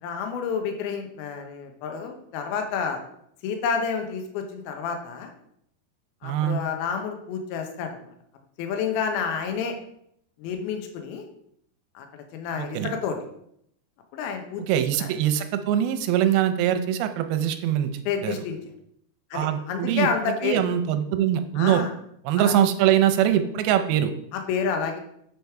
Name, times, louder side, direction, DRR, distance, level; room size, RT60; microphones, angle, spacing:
voice 1, 0.0-3.0 3.4-5.3 6.2-8.1 8.6-9.8 10.4-11.3 11.9-13.2 14.1-15.1 18.1-18.6 19.3-20.6 21.6-21.9 22.4-22.5 24.3-25.0, left 6 dB, 75° left, 5 dB, 2.7 m, -29 dB
voice 2, 6.2-6.6 12.6-12.9 14.7-17.9 18.2-18.4 19.3-21.8 22.3-24.1, right 10 dB, 80° right, 8 dB, 2.4 m, -23 dB
7.8 x 5.3 x 4.6 m, 0.72 s
omnidirectional pair, 4.8 m